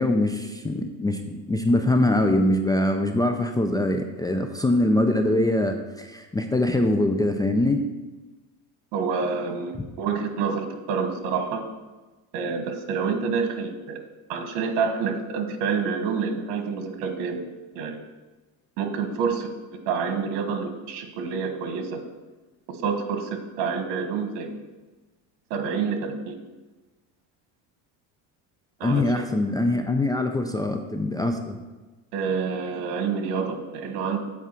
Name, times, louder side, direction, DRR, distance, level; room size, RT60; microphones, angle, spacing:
voice 1, 0.0-7.8 28.8-31.6, left 1 dB, 10° left, 5 dB, 0.4 m, -23 dB
voice 2, 8.9-11.6 12.3-14.0 14.3-17.4 17.7-18.0 18.8-19.5 19.9-22.0 22.7-24.5 25.5-26.4 28.8-29.2 32.1-34.2, right 5 dB, 85° right, 7 dB, 1.5 m, -28 dB
8.3 x 4.8 x 7.4 m, 1.2 s
cardioid pair, 140°, 39 cm